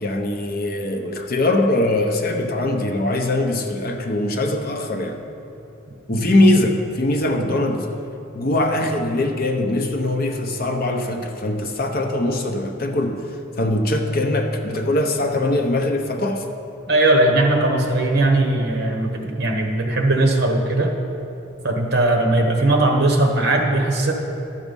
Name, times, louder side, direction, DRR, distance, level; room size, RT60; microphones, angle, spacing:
voice 1, 0.0-5.2 6.1-7.9 8.3-13.2 13.6-16.4, left 1 dB, 45° left, 4 dB, 0.7 m, -21 dB
voice 2, 16.9-20.9 21.6-24.1, right 2 dB, 50° right, 3 dB, 1.1 m, -19 dB
12.0 x 7.2 x 5.3 m, 2.8 s
head